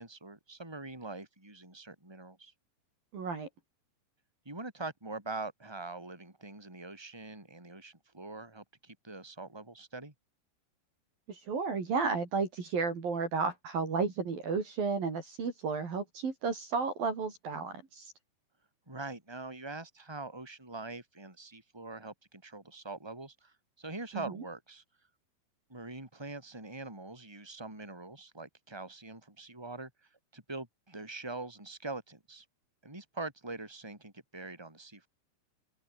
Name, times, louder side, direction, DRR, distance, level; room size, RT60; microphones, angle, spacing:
voice 1, 0.0-2.5 4.4-10.1 18.9-24.8 25.7-32.4 32.8-35.1, right 3 dB, 5° right, 5.7 m, -43 dB
voice 2, 3.1-3.5 11.3-18.1 24.1-24.2, right 4 dB, 50° right, 5.7 m, -33 dB
open air
omnidirectional pair, 5.3 m